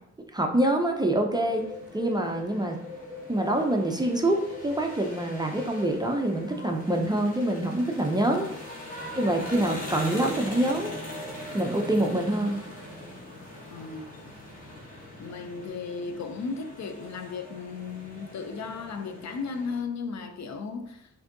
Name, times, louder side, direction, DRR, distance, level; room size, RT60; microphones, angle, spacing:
voice 1, 0.3-1.6 1.9-2.8 3.3-8.6 9.2-10.9 11.5-12.6, right 1 dB, 15° right, 0.3 m, -25 dB
Bird, 1.3-9.6, left 3 dB, 50° left, 1.6 m, -46 dB
sound 1, 1.4-19.8, left 1 dB, 30° left, 0.9 m, -42 dB
voice 2, 8.1-8.5 13.7-14.1 15.2-21.1, left 5 dB, 70° left, 0.5 m, -35 dB
6.0 x 2.6 x 2.6 m
wide cardioid pair, 175°, 29 cm